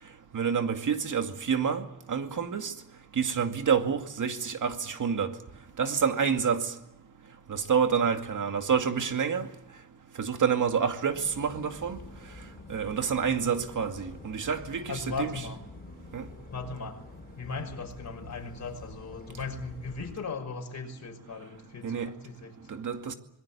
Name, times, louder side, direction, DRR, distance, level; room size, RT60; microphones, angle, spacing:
voice 1, 0.3-1.8 2.1-2.7 3.2-5.3 5.8-6.7 7.5-9.5 10.2-12.0 12.7-15.5 16.1-16.2 21.8-22.1 22.7-23.1, right 6 dB, 55° right, 2.3 m, -28 dB
sound 1, 11.1-20.1, left 3 dB, 25° left, 5.1 m, -47 dB
voice 2, 14.9-15.6 16.5-17.0 17.4-22.5, left 4 dB, 50° left, 5.7 m, -37 dB
26.0 x 21.5 x 8.5 m
wide cardioid pair, 120°, 36 cm